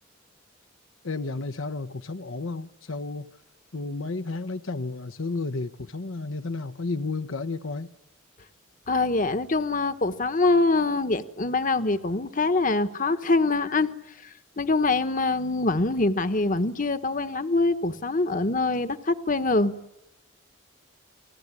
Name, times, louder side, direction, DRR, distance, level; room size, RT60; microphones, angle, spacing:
voice 1, 1.0-3.3 3.7-7.9, left 3 dB, 75° left, 1.0 m, -32 dB
voice 2, 8.9-13.9 14.6-19.8, left 3 dB, 40° left, 1.2 m, -24 dB
29.5 x 20.5 x 9.8 m
head